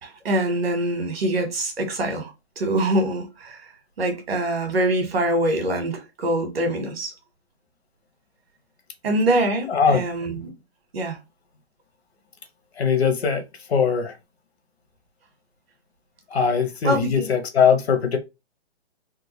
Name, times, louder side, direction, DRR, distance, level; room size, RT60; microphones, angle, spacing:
voice 1, 0.0-3.7 4.0-7.1 9.0-10.5 10.9-11.2 16.8-17.3, right 1 dB, 60° right, 1.5 m, -24 dB
voice 2, 9.7-10.0 12.8-13.4 13.7-14.2 16.3-18.2, left 6 dB, 65° left, 1.1 m, -20 dB
3.6 x 2.2 x 3.1 m
hypercardioid pair, 160°, 33 cm